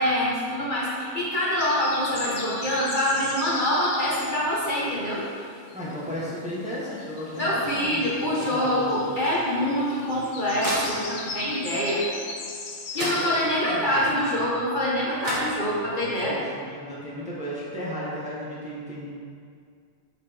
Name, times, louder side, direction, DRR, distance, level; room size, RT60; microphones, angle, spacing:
voice 1, 0.0-5.2 7.4-12.0 12.9-16.4, equal, 40° left, -6 dB, 1.4 m, -25 dB
sound 1, 1.6-5.9 6.2-13.6, left 4 dB, 80° left, 1.2 m, -38 dB
voice 2, 5.7-9.0 13.2-14.1 16.3-19.1, equal, 5° right, -7 dB, 1.2 m, -35 dB
sound 2, 9.8-11.4 12.6-12.7 12.9-13.8 14.9-15.0 15.2-16.1, equal, 25° right, 1.5 m, -33 dB
7.0 x 6.7 x 3.5 m, 2.2 s
omnidirectional pair, 1.3 m